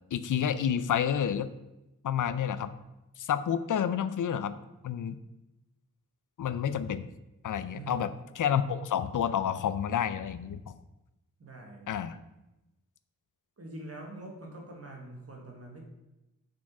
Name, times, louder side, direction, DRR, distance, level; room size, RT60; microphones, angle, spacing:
voice 1, 0.1-1.5 2.0-2.7 3.2-4.6 4.8-5.2 6.4-7.1 7.4-8.1 8.4-10.7 11.9-12.2, left 8 dB, 70° left, 14 dB, 0.5 m, -29 dB
voice 2, 7.7-8.1 11.4-12.0 13.6-15.8, right 2 dB, 50° right, 1 dB, 1.6 m, -44 dB
6.1 x 4.4 x 6.0 m, 0.97 s
wide cardioid pair, 90°, 32 cm